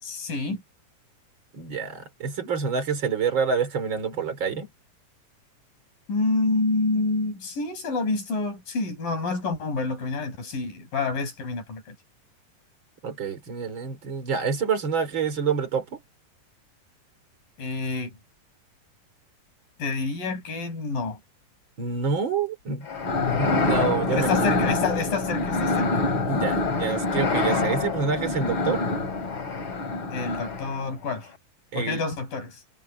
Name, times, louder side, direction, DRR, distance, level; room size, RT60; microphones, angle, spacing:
voice 1, 0.0-0.6 6.1-12.0 17.6-18.2 19.8-21.2 23.2-23.7 24.1-26.0 30.1-31.3 31.8-32.6, left 3 dB, 70° left, 7.6 m, -28 dB
voice 2, 1.5-4.7 13.0-16.0 21.8-22.9 23.3-24.6 26.3-28.9 31.7-32.0, right 5 dB, 35° right, 3.6 m, -27 dB
sound 1, 22.9-30.9, left 3 dB, 35° left, 3.7 m, -26 dB
omnidirectional pair, 4.0 m